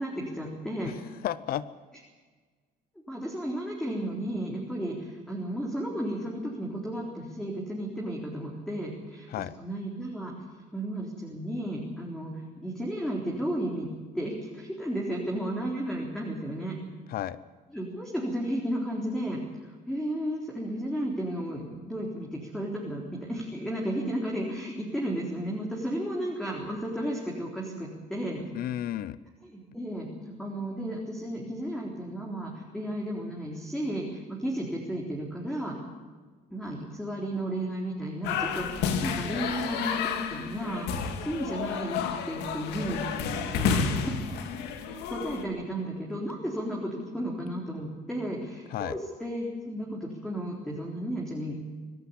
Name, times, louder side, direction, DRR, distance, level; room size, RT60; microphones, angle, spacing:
voice 1, 0.0-0.9 3.1-9.3 9.6-10.3 10.7-13.9 14.1-16.8 17.7-23.0 23.3-28.5 29.4-35.7 36.5-43.0 43.5-44.1 45.1-51.6, right 1 dB, 5° left, -2 dB, 4.0 m, -33 dB
voice 2, 0.8-1.6 9.3-9.5 17.1-17.4 28.5-29.2 48.7-49.0, left 12 dB, 60° left, 17 dB, 0.7 m, -33 dB
sound 1, 38.2-45.4, left 6 dB, 85° left, 2.1 m, -31 dB
24.5 x 12.0 x 9.9 m, 1.4 s
cardioid pair, 110°, 17 cm